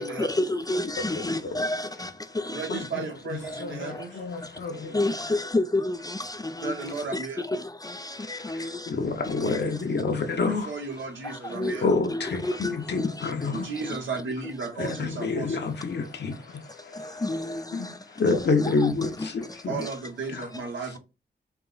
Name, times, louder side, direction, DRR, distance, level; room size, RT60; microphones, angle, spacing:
voice 1, 0.0-1.8 4.9-5.3 5.5-6.0 6.6-6.7 8.5-8.7 11.6-11.8 12.1-12.8 17.2-17.6 18.6-18.7, left 2 dB, 20° left, 0.4 m, -27 dB
voice 2, 0.8-1.7 2.7-5.0 8.2-10.8 11.4-14.0 14.8-17.2 17.7-19.7 20.3-20.5 20.8-20.9, left 4 dB, 65° left, 0.9 m, -29 dB
voice 3, 2.5-4.2 6.6-7.4 10.7-11.9 13.5-15.6 19.7-21.0, right 4 dB, 90° right, 1.1 m, -34 dB
4.5 x 2.2 x 3.8 m
cardioid pair, 70°, 19 cm